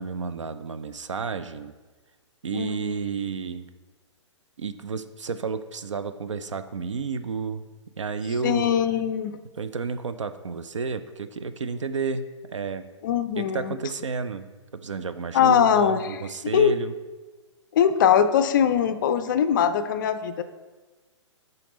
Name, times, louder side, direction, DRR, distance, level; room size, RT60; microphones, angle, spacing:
voice 1, 0.0-1.7 2.4-3.6 4.6-7.6 8.0-8.7 9.6-12.2 12.5-12.9 13.4-14.5 14.7-16.9, right 5 dB, 75° right, 11 dB, 0.4 m, -31 dB
voice 2, 2.5-3.0 8.4-9.4 13.0-13.7 15.3-16.2 16.5-16.8 17.7-20.4, left 8 dB, 40° left, 11 dB, 0.4 m, -21 dB
5.8 x 3.9 x 5.2 m, 1.3 s
figure-of-eight pair, 120°, 16 cm